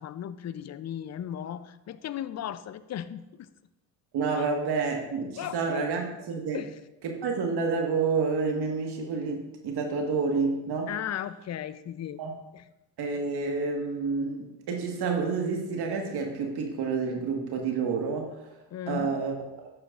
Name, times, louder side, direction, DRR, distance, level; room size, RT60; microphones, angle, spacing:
voice 1, 0.0-3.5 4.3-4.5 5.4-5.9 6.5-6.8 10.9-12.2 12.5-12.6 18.7-19.2, left 10 dB, 35° left, 14 dB, 0.5 m, -36 dB
voice 2, 4.1-6.6 7.0-10.9 12.2-12.3 13.0-18.5 18.9-19.7, right 4 dB, 55° right, 2 dB, 1.7 m, -29 dB
12.5 x 8.7 x 2.5 m, 0.98 s
supercardioid pair, 75°, 46 cm